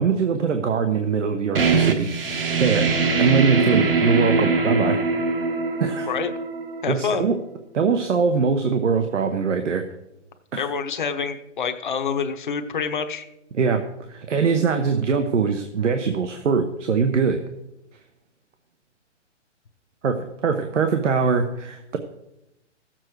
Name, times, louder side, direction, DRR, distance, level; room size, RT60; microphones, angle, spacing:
voice 1, 0.0-2.1 2.6-2.9 3.2-5.0 5.8-6.1 6.9-7.3 7.7-9.8 10.5-10.7 13.5-13.8 14.1-17.4 20.0-22.0, right 5 dB, 75° right, 7 dB, 1.1 m, -22 dB
sound 1, 1.5-7.0, right 4 dB, 50° right, 1.3 m, -22 dB
voice 2, 6.8-7.3 10.6-13.3, left 6 dB, 40° left, 7 dB, 0.9 m, -27 dB
16.0 x 7.6 x 4.6 m, 0.90 s
hypercardioid pair, 180°, 36 cm